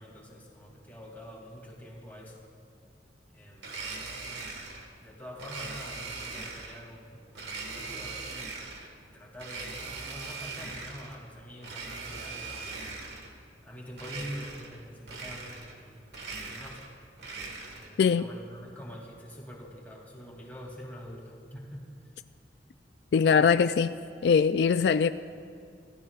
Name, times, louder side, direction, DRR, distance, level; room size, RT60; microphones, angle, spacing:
voice 1, 0.0-2.4 3.3-4.2 5.0-8.4 9.0-12.9 13.6-16.1 16.4-16.8 17.7-22.1, equal, 10° left, 2.5 m, -45 dB
Domestic sounds home sounds, 3.6-4.9 5.4-6.8 7.3-8.9 9.4-11.2 11.6-13.3 13.9-14.8 15.0-15.8 16.1-18.0, right 3 dB, 75° right, 1.6 m, -40 dB
voice 2, 23.1-23.9 24.2-25.1, left 6 dB, 65° left, 0.3 m, -22 dB
27.0 x 15.5 x 2.4 m
head